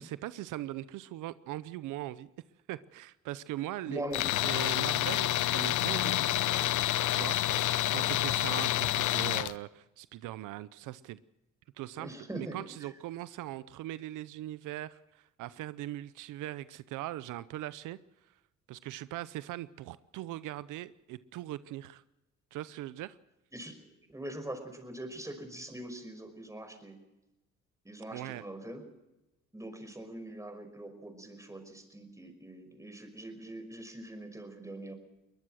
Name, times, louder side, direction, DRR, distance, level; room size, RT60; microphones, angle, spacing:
voice 1, 0.0-2.3 2.7-4.0 4.4-6.4 7.1-11.2 11.8-18.0 18.7-22.0 22.5-23.2 28.1-28.4, right 15 dB, 90° right, 16 dB, 0.7 m, -40 dB
voice 2, 3.9-4.4 7.9-8.2 12.0-12.9 23.5-27.0 27.8-28.8 29.5-34.9, right 1 dB, 10° right, 6 dB, 5.4 m, -43 dB
Tools, 4.1-9.5, left 14 dB, 85° left, 0.8 m, -28 dB
22.5 x 20.5 x 6.4 m, 0.97 s
cardioid pair, 90°, 30 cm